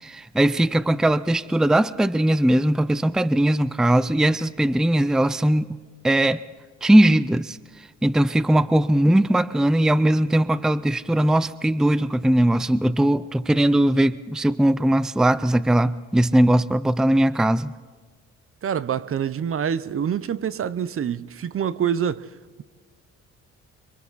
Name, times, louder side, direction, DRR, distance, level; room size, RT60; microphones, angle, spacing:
voice 1, 0.0-5.8 6.0-6.4 6.8-7.6 8.0-17.7, right 1 dB, ahead, 0.5 m, -19 dB
voice 2, 18.6-22.3, right 8 dB, 45° right, 0.7 m, -26 dB
25.5 x 25.5 x 4.1 m
cardioid pair, 90°, 30 cm